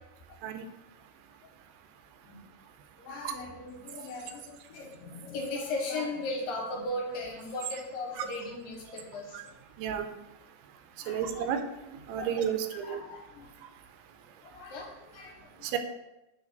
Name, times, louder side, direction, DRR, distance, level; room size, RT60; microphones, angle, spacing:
voice 1, 2.9-9.6 11.0-11.5 12.2-12.3 12.8-13.5 14.4-15.7, left 2 dB, 70° left, -1 dB, 2.4 m, -38 dB
voice 2, 11.1-13.0 15.6-15.8, right 8 dB, 85° right, 7 dB, 2.7 m, -32 dB
7.3 x 3.2 x 5.2 m, 0.96 s
omnidirectional pair, 4.6 m